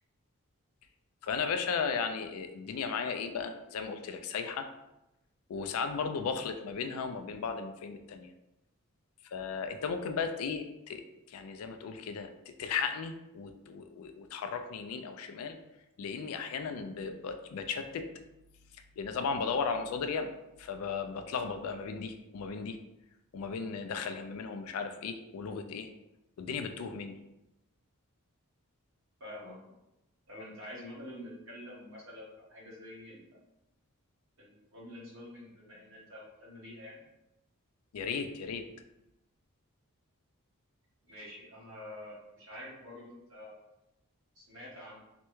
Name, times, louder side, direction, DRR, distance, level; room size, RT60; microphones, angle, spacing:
voice 1, 1.2-4.7 5.5-8.3 9.3-15.6 16.0-18.0 19.0-20.3 20.6-22.8 23.3-25.9 26.4-27.2 37.9-38.6, left 5 dB, 75° left, 7 dB, 0.3 m, -35 dB
voice 2, 29.2-29.5 30.3-33.3 34.4-37.0 41.1-43.5 44.3-45.0, left 1 dB, 60° right, -6 dB, 1.2 m, -47 dB
3.3 x 2.1 x 3.0 m, 0.92 s
head